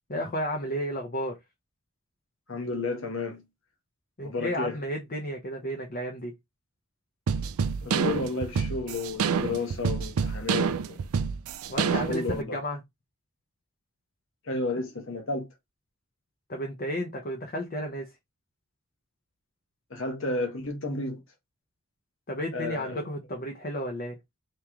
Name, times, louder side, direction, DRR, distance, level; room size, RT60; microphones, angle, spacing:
voice 1, 0.1-1.4 4.2-6.3 11.7-12.8 16.5-18.1 22.3-24.2, equal, 40° left, 0.8 m, -32 dB
voice 2, 2.5-3.4 4.2-4.8 7.8-11.0 12.1-12.6 14.4-15.5 19.9-21.2 22.5-23.1, left 3 dB, 60° left, 1.1 m, -32 dB
sound 1, 7.3-12.4, right 6 dB, 70° right, 0.4 m, -27 dB
3.1 x 3.0 x 3.6 m
head